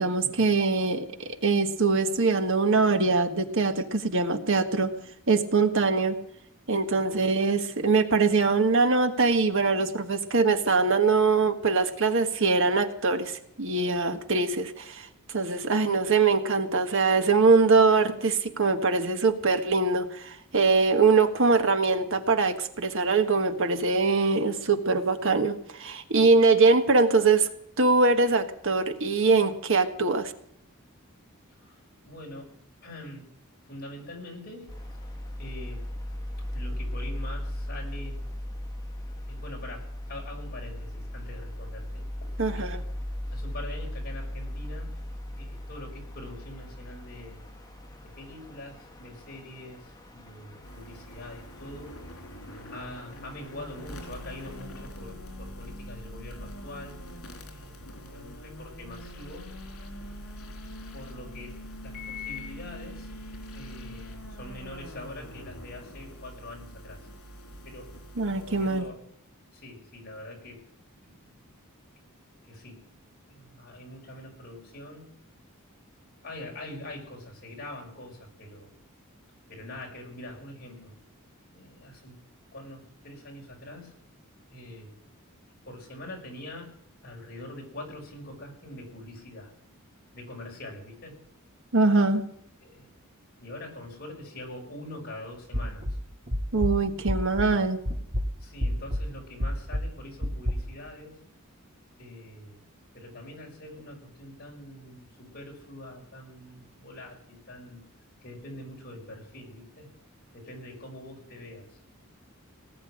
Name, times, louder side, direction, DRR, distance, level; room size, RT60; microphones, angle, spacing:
voice 1, 0.0-4.9 5.3-6.2 6.7-27.5 27.8-30.3 42.4-42.8 68.2-68.9 91.7-92.2 96.5-97.8, right 4 dB, 60° right, 7 dB, 1.5 m, -23 dB
voice 2, 31.6-33.3 33.6-34.7 35.4-36.0 36.5-38.2 39.3-42.8 43.3-44.9 45.4-47.4 48.0-51.9 52.7-57.0 57.5-59.5 60.9-61.6 61.8-63.1 63.5-67.0 67.6-67.9 68.3-69.0 69.5-70.6 71.1-71.4 72.4-72.8 73.3-75.1 76.2-78.8 79.5-80.9 81.5-82.2 82.5-83.9 84.5-84.9 85.6-86.7 87.0-89.5 90.1-91.4 92.6-92.9 93.4-96.0 97.4-97.6 98.4-101.2 102.0-102.6 102.9-107.8 108.2-109.9 110.3-111.8, left 1 dB, 45° left, 0 dB, 5.9 m, -44 dB
sound 1, 34.7-54.6, left 1 dB, 20° left, 1.7 m, -38 dB
sound 2, 50.6-68.8, left 1 dB, 80° left, 3.8 m, -43 dB
sound 3, 95.5-97.6 97.9-100.5, equal, 35° right, 2.6 m, -30 dB
19.0 x 7.0 x 10.0 m, 0.74 s
head